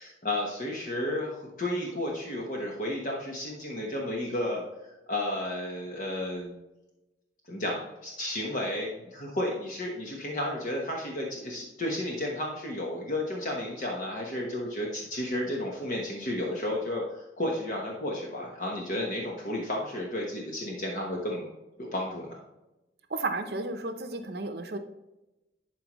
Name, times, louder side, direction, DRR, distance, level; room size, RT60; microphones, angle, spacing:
voice 1, 0.0-4.6 5.1-6.5 7.5-21.5 21.8-22.4, left 1 dB, 45° left, -2 dB, 1.1 m, -32 dB
voice 2, 23.1-24.8, right 2 dB, 60° right, 7 dB, 0.7 m, -33 dB
11.5 x 4.7 x 3.1 m, 1.0 s
head